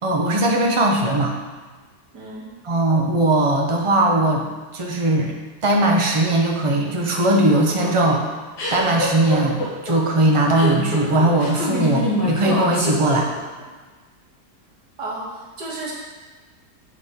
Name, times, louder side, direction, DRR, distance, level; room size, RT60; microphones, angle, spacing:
voice 1, 0.0-1.3 2.6-4.5 4.7-5.3 5.6-8.2 8.7-13.3, right 1 dB, 45° right, 0 dB, 0.4 m, -19 dB
voice 2, 2.1-2.5 15.0-15.9, right 2 dB, 75° right, -5 dB, 2.2 m, -32 dB
sound 1, 7.3-13.6, left 2 dB, 75° left, 2.0 m, -25 dB
8.5 x 4.2 x 3.6 m, 1.4 s
omnidirectional pair, 1.8 m